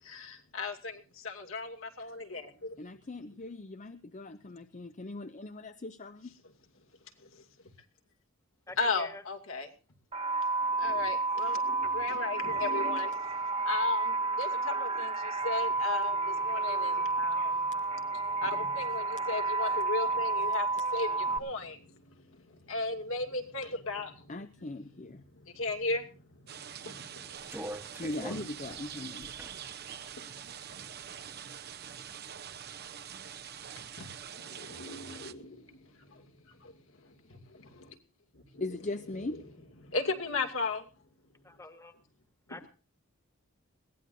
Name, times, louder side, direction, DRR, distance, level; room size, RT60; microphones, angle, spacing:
voice 1, 0.0-2.8 7.2-7.4 8.8-9.7 10.6-17.7 18.1-24.3 25.3-27.5 34.0-34.1 34.3-36.3 36.6-38.0 38.3-38.7 39.8-40.9, left 3 dB, 75° left, 4 dB, 2.6 m, -36 dB
voice 2, 2.8-6.4 24.3-25.2 28.0-29.3 38.6-39.4, left 2 dB, 35° left, 10 dB, 0.6 m, -40 dB
voice 3, 8.7-9.2 41.4-42.0 42.5-42.7, left 2 dB, 15° left, 8 dB, 1.5 m, -46 dB
sound 1, 10.1-21.4, right 3 dB, 30° right, 1.3 m, -30 dB
sound 2, 26.5-35.3, right 9 dB, 50° right, 0.8 m, -45 dB
sound 3, 27.4-31.3 31.8-32.8 33.1-34.1, right 1 dB, 10° right, 1.2 m, -45 dB
21.0 x 17.0 x 2.7 m, 0.38 s
head